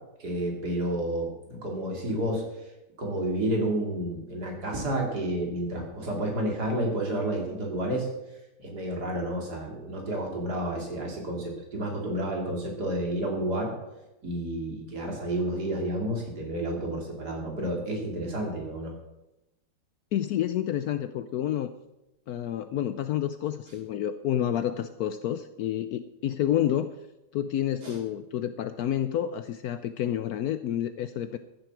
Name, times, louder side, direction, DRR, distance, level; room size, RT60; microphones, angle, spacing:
voice 1, 0.2-2.4 3.0-8.1 8.6-13.7 14.2-18.9 27.8-28.0, right 1 dB, 70° right, 0 dB, 3.5 m, -30 dB
voice 2, 20.1-21.7 22.3-26.9 27.3-31.4, left 11 dB, 70° left, 11 dB, 1.0 m, -29 dB
14.0 x 7.7 x 6.1 m, 0.95 s
omnidirectional pair, 1.8 m